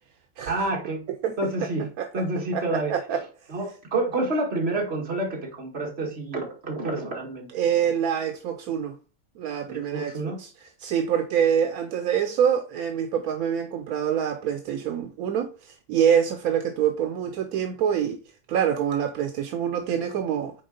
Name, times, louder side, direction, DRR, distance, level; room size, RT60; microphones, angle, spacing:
voice 1, 0.5-1.0 1.4-1.9 2.1-3.2 3.5-7.5 9.7-10.4, right 2 dB, 45° right, 2.0 m, -28 dB
voice 2, 1.2-1.7 2.0-2.1 2.5-3.2 7.5-9.0 9.4-10.5 10.8-18.2 18.5-20.5, right 8 dB, 80° right, 1.1 m, -25 dB
6.5 x 4.3 x 3.8 m
omnidirectional pair, 1.6 m